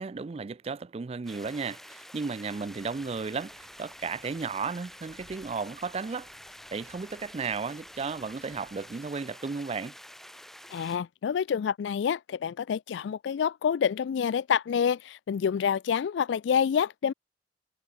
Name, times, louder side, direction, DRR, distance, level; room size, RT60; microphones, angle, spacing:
voice 1, 0.0-6.3 6.7-9.9, right 5 dB, 35° right, 0.4 m, -34 dB
sound 1, 1.3-11.0, equal, ahead, 2.1 m, -48 dB
sound 2, 2.5-9.1, right 1 dB, 55° right, 6.1 m, -62 dB
voice 2, 10.7-17.1, left 7 dB, 75° left, 0.3 m, -27 dB
head